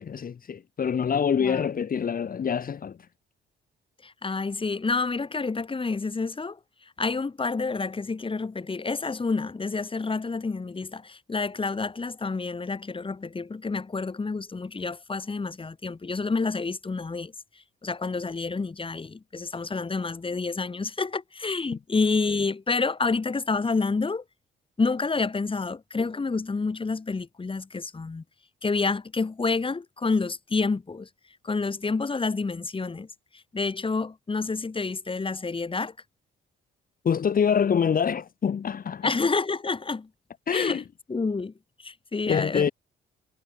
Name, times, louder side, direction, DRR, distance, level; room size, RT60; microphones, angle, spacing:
voice 1, 0.0-3.1 37.0-39.1 40.5-40.8 42.3-42.7, left 7 dB, 45° left, 2.4 m, -25 dB
voice 2, 1.4-1.7 4.0-6.6 7.0-17.3 17.8-24.2 24.8-28.2 28.6-31.1 31.4-33.1 33.3-35.9 39.0-40.1 40.5-40.8 41.1-41.5 41.8-42.7, left 4 dB, 25° left, 4.3 m, -28 dB
cardioid pair, 90°, 20 cm